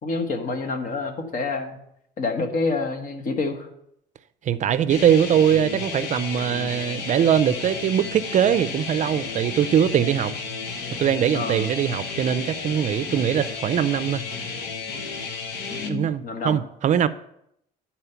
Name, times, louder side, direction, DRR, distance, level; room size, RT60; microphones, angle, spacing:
voice 1, 0.0-1.8 2.2-3.7 11.3-11.6 15.7-16.6, left 3 dB, 50° left, 1.4 m, -28 dB
voice 2, 4.4-10.3 11.0-14.2 15.9-17.1, right 9 dB, 45° right, 0.4 m, -21 dB
sound 1, 4.9-15.9, left 5 dB, 90° left, 1.0 m, -32 dB
11.5 x 4.3 x 5.7 m
cardioid pair, 110°, 17 cm